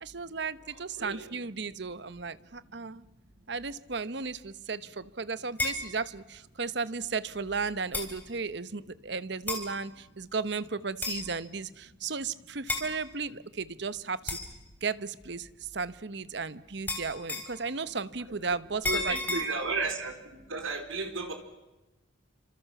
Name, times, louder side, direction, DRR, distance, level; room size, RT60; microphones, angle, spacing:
voice 1, 0.0-3.0 3.5-14.4 14.8-19.4, right 4 dB, 55° right, 16 dB, 0.9 m, -35 dB
voice 2, 0.7-1.3 18.8-20.1 20.5-21.3, right 3 dB, 85° right, 6 dB, 4.1 m, -33 dB
sound 1, 5.6-5.8 6.9-7.0 7.9-8.1 9.5-9.7 11.0-11.3 12.7-12.9 14.3-14.5 16.9-17.6 18.8-19.4, left 2 dB, 10° left, 3.8 m, -32 dB
30.0 x 26.5 x 6.0 m, 1.0 s
head